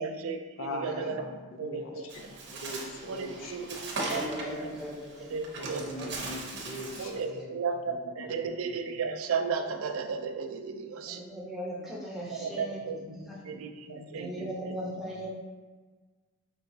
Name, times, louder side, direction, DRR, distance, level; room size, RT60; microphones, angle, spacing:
voice 1, 0.0-1.2 1.6-2.1 3.1-3.6 4.1-4.5 5.3-6.1 7.0-11.2 12.3-13.1 13.5-14.5, right 5 dB, 90° right, 6 dB, 0.4 m, -34 dB
voice 2, 0.6-3.9 5.6-7.6 7.9-8.8 12.3-12.5 13.1-13.6 13.9-14.3, left 1 dB, 70° left, 2 dB, 0.5 m, -42 dB
Bird, 2.1-7.2, right 2 dB, 60° right, 0.7 m, -39 dB
voice 3, 3.2-3.5 4.0-5.3 6.0-6.1 11.1-13.6 14.1-15.3, equal, ahead, -6 dB, 0.9 m, -39 dB
4.6 x 3.0 x 2.7 m, 1.4 s
head